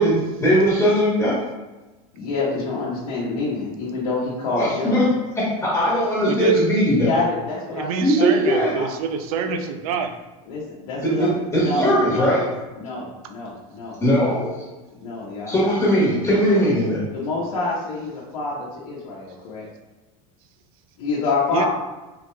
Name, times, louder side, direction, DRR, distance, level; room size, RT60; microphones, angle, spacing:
voice 1, 0.0-1.4 4.5-5.1 5.6-7.1 8.0-8.7 11.0-12.4 14.0-14.6 15.5-17.0, equal, 15° left, -7 dB, 1.2 m, -19 dB
voice 2, 2.1-5.0 6.9-7.9 8.2-8.9 9.4-9.6 10.5-12.4 12.8-14.3 14.9-15.7 17.1-19.6 21.0-21.7, left 3 dB, 85° left, -7 dB, 0.9 m, -27 dB
voice 3, 6.2-6.7 7.7-10.1 21.5-21.6, right 6 dB, 80° right, 7 dB, 0.4 m, -26 dB
3.8 x 2.9 x 2.2 m, 1.1 s
supercardioid pair, 120°, 18 cm